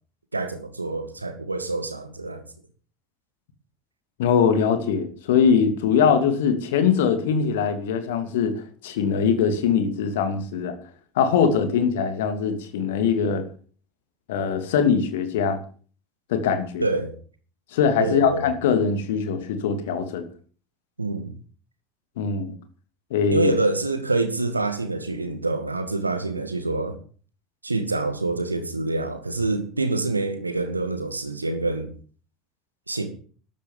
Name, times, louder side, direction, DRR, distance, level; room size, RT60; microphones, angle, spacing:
voice 1, 0.3-2.4 16.8-17.1 18.0-18.5 21.0-21.3 23.3-27.0 27.6-31.9 32.9-33.1, right 2 dB, 85° right, 2.1 m, -26 dB
voice 2, 4.2-10.7 11.2-13.4 14.3-15.6 16.3-16.8 17.7-20.3 22.2-22.5 23.1-23.5, left 6 dB, 65° left, 2.7 m, -22 dB
13.0 x 12.5 x 7.3 m
figure-of-eight pair, 70°, 0 cm